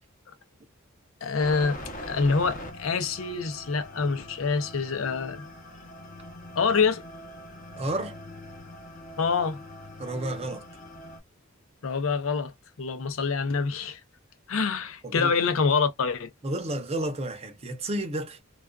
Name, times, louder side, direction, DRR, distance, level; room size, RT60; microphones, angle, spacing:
voice 1, 1.2-5.5 6.6-7.0 9.2-9.6 11.8-14.0 14.5-16.3, left 5 dB, 70° left, 0.6 m, -26 dB
sound 1, 1.4-11.2, left 1 dB, 40° left, 0.8 m, -43 dB
voice 2, 7.8-8.2 10.0-10.6 15.0-15.3 16.4-18.4, right 1 dB, 30° right, 0.6 m, -31 dB
2.4 x 2.2 x 2.3 m
head